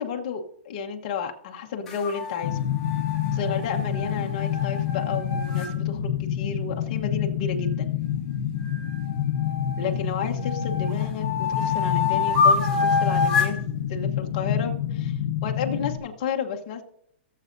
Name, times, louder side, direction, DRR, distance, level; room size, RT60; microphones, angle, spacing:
voice 1, 0.0-2.6 3.3-7.9 9.8-11.3 11.6-13.6 13.9-16.8, left 6 dB, 30° left, 2 dB, 1.1 m, -32 dB
sound 1, 1.9-5.7 8.6-9.9 10.4-13.6, left 5 dB, 5° left, 2.2 m, -27 dB
sound 2, 2.4-16.0, left 9 dB, 65° left, 0.9 m, -28 dB
17.0 x 7.5 x 2.6 m, 0.67 s
hypercardioid pair, 180°, 6 cm